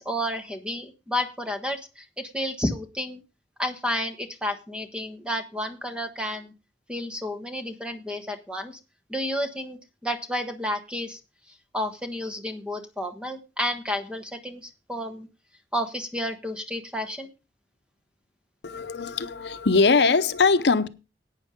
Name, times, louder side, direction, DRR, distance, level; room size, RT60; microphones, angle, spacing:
voice 1, 0.0-3.2 3.6-6.5 6.9-8.8 9.1-11.2 11.7-15.3 15.7-17.3, left 1 dB, 5° right, 1.4 m, -31 dB
voice 2, 18.6-20.9, left 4 dB, 75° left, 0.8 m, -21 dB
11.5 x 9.0 x 5.2 m
head